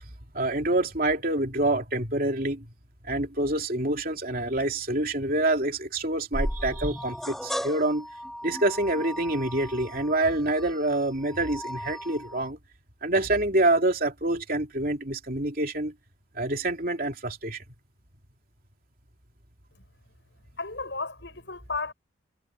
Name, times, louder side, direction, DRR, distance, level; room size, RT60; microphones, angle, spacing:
voice 1, 0.3-2.7 3.1-8.1 8.4-12.6 13.0-15.9 16.3-17.6, right 2 dB, 50° right, 3.2 m, -26 dB
sound 1, 6.3-12.5, equal, ahead, 1.5 m, -36 dB
voice 2, 20.6-21.9, left 4 dB, 65° left, 7.0 m, -33 dB
head